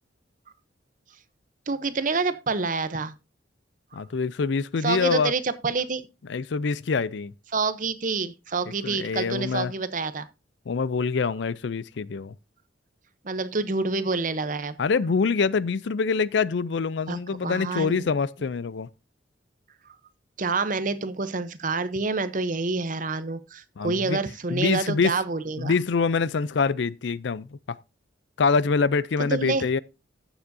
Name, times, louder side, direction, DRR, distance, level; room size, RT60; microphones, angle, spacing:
voice 1, 1.7-3.1 4.8-6.1 7.5-10.3 13.2-14.8 17.1-18.1 20.4-25.7 29.2-29.7, right 4 dB, 45° right, 0.8 m, -27 dB
voice 2, 3.9-5.3 6.3-7.3 8.8-9.7 10.7-12.3 14.8-18.9 23.8-24.2 24.5-25.2 25.6-27.8 28.4-29.8, left 5 dB, 70° left, 0.5 m, -25 dB
14.5 x 7.0 x 2.7 m
head